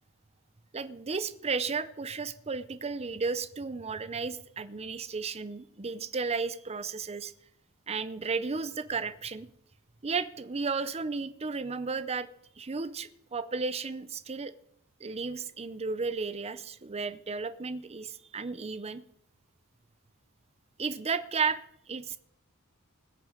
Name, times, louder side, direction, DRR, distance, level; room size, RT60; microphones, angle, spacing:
voice 1, 0.7-7.3 7.9-9.5 10.0-12.3 12.6-14.5 15.0-19.0 20.8-21.6 21.9-22.2, right 4 dB, 30° right, 14 dB, 0.6 m, -33 dB
20.0 x 6.8 x 5.0 m, 0.73 s
head